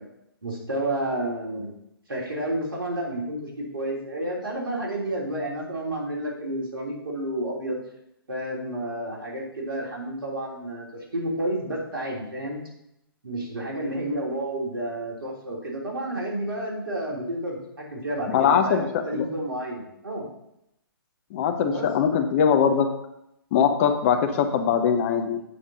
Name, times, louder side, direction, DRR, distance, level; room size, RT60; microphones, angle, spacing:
voice 1, 0.4-1.7 2.1-7.8 8.3-12.6 13.2-20.3 21.6-22.2, right 1 dB, 65° right, -2 dB, 3.3 m, -30 dB
voice 2, 18.3-18.8 19.1-19.2 21.3-22.9 23.5-25.4, left 7 dB, 35° left, 7 dB, 0.9 m, -21 dB
8.6 x 7.2 x 4.0 m, 0.81 s
figure-of-eight pair, 130°, 13 cm